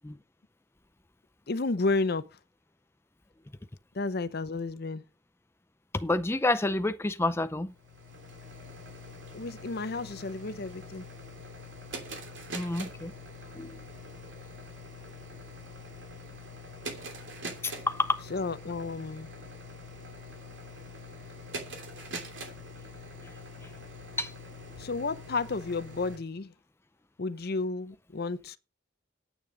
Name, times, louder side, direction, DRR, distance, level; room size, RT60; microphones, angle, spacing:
voice 1, 1.5-2.3 3.9-5.0 9.3-11.0 18.3-19.3 24.8-26.5 27.2-28.6, left 3 dB, 55° left, 0.7 m, -32 dB
voice 2, 5.9-7.7 12.5-13.1 13.5-13.8 17.6-18.2 23.2-23.3 24.2-24.3, left 2 dB, 15° left, 0.5 m, -29 dB
sound 1, 7.7-26.2, equal, 75° right, 2.8 m, -44 dB
9.5 x 8.8 x 5.1 m
head